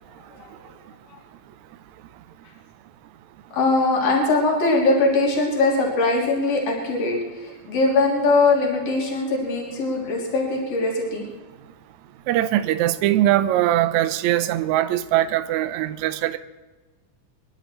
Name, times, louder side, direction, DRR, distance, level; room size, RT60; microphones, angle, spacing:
voice 1, 3.5-11.2, left 3 dB, 45° left, 4.1 m, -21 dB
voice 2, 12.3-16.4, right 13 dB, 75° right, 1.8 m, -21 dB
25.0 x 11.5 x 4.4 m
omnidirectional pair, 3.9 m